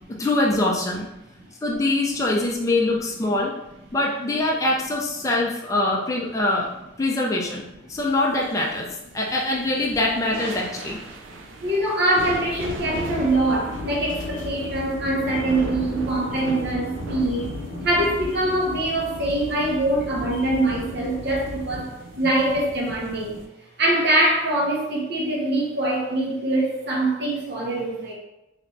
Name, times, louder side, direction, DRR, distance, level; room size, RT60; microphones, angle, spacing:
voice 1, 0.1-1.1 1.6-3.5 3.9-6.7 7.0-8.9 9.1-11.0, left 2 dB, 15° left, -3 dB, 0.4 m, -23 dB
sound 1, 7.9-23.5, right 2 dB, 80° right, 0.4 m, -38 dB
voice 2, 11.3-17.5 17.8-23.4 23.8-28.1, right 1 dB, 60° right, -2 dB, 0.9 m, -24 dB
sound 2, 12.8-21.9, left 3 dB, 75° left, 0.4 m, -35 dB
3.3 x 3.0 x 2.6 m, 0.90 s
head